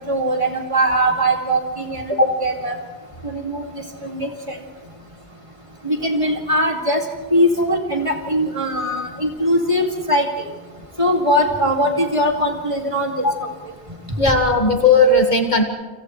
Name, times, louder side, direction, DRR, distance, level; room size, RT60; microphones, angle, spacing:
voice 1, 0.0-2.1 2.4-2.8 3.2-3.6 4.0-4.6 5.8-7.0 7.3-10.5 11.0-13.2, equal, 30° right, 1 dB, 2.5 m, -20 dB
voice 2, 14.2-15.6, left 2 dB, 45° left, 3 dB, 2.0 m, -15 dB
29.5 x 27.5 x 3.3 m, 1.3 s
omnidirectional pair, 1.0 m